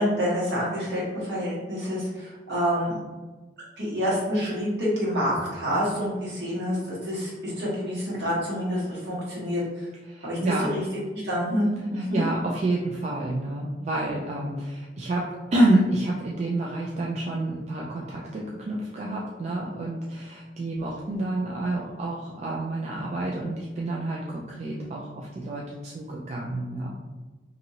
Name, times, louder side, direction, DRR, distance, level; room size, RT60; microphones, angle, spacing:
voice 1, 0.0-3.0 3.8-9.8 10.2-10.4 10.7-10.8 11.1-12.2, equal, 65° right, -7 dB, 1.2 m, -27 dB
voice 2, 10.1-10.8 11.9-15.2 15.5-26.9, right 1 dB, 40° right, -3 dB, 0.3 m, -28 dB
2.8 x 2.6 x 2.7 m, 1.2 s
head